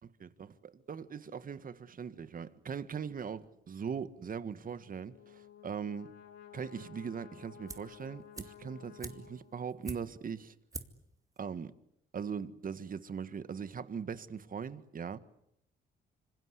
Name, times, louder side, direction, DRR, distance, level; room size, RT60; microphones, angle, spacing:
voice 1, 0.0-6.1 6.5-10.5 11.4-11.7 12.1-15.2, right 6 dB, 45° right, 1.7 m, -40 dB
Brass instrument, 4.8-9.8, left 9 dB, 90° left, 3.1 m, -54 dB
sound 1, 7.7-8.0 8.3-10.3 10.7-11.1 11.4-11.5, right 2 dB, 15° right, 2.3 m, -45 dB
26.5 x 25.5 x 8.3 m
cardioid pair, 90°, 20 cm